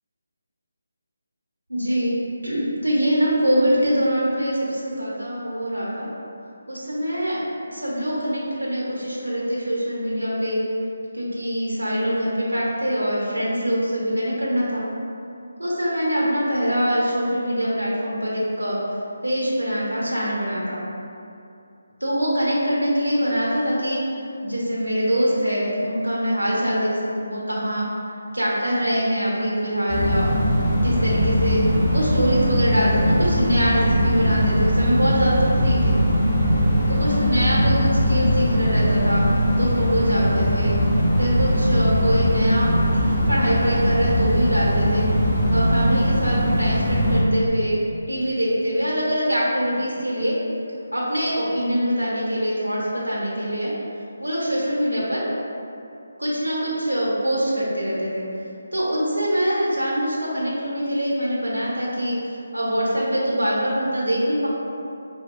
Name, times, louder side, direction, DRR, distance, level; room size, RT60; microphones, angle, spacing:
voice 1, 1.7-2.2 2.4-6.1 6.7-7.4 7.7-10.6 11.1-14.8 15.6-18.8 19.2-20.8 22.0-24.0 24.4-27.9 28.3-30.5 30.8-31.6 31.9-35.9 36.9-39.2 39.6-40.7 41.2-45.0 45.5-47.8 48.1-50.4 50.9-53.7 54.2-55.2 56.2-58.2 58.7-64.5, equal, 90° right, -6 dB, 0.9 m, -23 dB
sound 1, 29.9-47.2, equal, 15° left, 1.4 m, -20 dB
4.8 x 2.2 x 2.2 m, 2.6 s
figure-of-eight pair, 155°, 0 cm